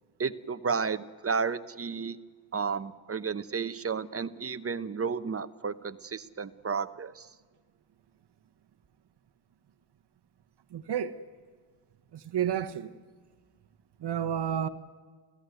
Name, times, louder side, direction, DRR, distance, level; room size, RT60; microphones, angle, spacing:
voice 1, 0.2-2.2 2.5-7.3, right 5 dB, 30° right, 0.8 m, -32 dB
voice 2, 10.7-11.2 12.1-12.9 14.0-14.7, right 9 dB, 65° right, 1.1 m, -30 dB
29.0 x 16.0 x 9.4 m
cardioid pair, 105°, 44 cm